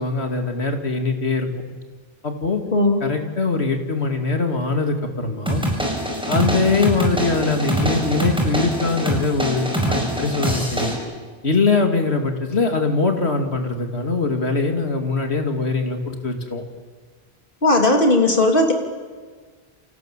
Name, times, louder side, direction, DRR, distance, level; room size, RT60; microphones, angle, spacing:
voice 1, 0.0-1.5 2.2-2.6 3.0-5.6 6.2-10.9 11.4-16.6, left 3 dB, 80° left, 5 dB, 2.9 m, -22 dB
sound 1, 5.5-10.9, right 1 dB, 5° right, 5.6 m, -24 dB
voice 2, 17.6-18.7, left 2 dB, 55° left, 3 dB, 3.5 m, -16 dB
29.5 x 25.0 x 7.5 m, 1.5 s
omnidirectional pair, 1.1 m